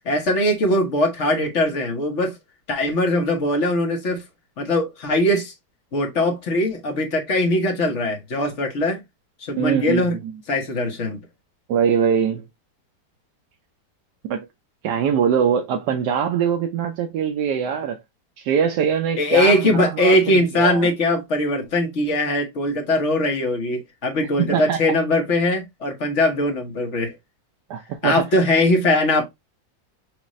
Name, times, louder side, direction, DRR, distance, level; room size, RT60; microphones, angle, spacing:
voice 1, 0.0-2.3 2.7-4.2 4.6-5.5 5.9-9.0 9.4-10.1 10.5-11.2 19.2-27.1 28.0-29.2, left 1 dB, 45° left, 1.3 m, -21 dB
voice 2, 9.5-10.3 11.7-12.5 14.2-14.5 14.8-18.0 18.4-20.9 24.4-25.0 27.7-28.2, right 8 dB, 75° right, 1.2 m, -22 dB
6.4 x 2.5 x 3.0 m
omnidirectional pair, 1.8 m